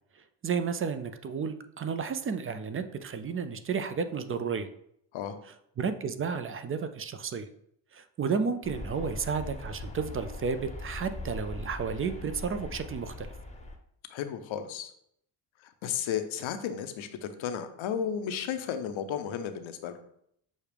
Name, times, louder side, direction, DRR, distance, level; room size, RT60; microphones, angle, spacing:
voice 1, 0.4-4.7 5.8-7.5 7.9-13.3, right 6 dB, 30° right, 10 dB, 0.4 m, -32 dB
sound 1, 8.6-13.8, left 2 dB, 15° left, 0.7 m, -41 dB
voice 2, 14.1-14.9 15.6-20.0, left 8 dB, 70° left, 9 dB, 0.7 m, -33 dB
6.3 x 2.4 x 3.4 m, 0.71 s
cardioid pair, 70°, 48 cm